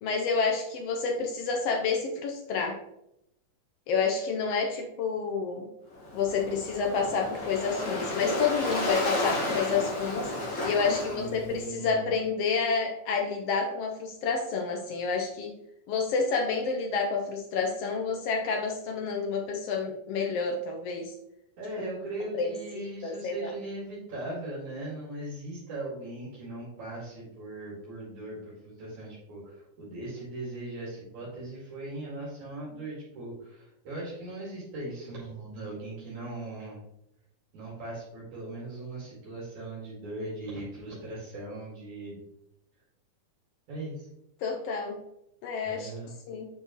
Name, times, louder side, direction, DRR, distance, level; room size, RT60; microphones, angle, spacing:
voice 1, 0.0-2.8 3.9-5.7 6.1-10.3 10.6-15.5 15.9-21.1 22.4-23.5 44.4-45.0 45.4-45.9 46.3-46.5, left 5 dB, 85° left, 1 dB, 1.3 m, -29 dB
Waves surf, 5.9-11.6, left 1 dB, 40° left, 2.2 m, -32 dB
voice 2, 11.1-12.1 21.6-36.8 37.5-42.2 43.7-44.1 45.6-46.1, right 2 dB, 65° right, -6 dB, 3.4 m, -39 dB
8.4 x 4.6 x 3.0 m, 0.82 s
omnidirectional pair, 3.8 m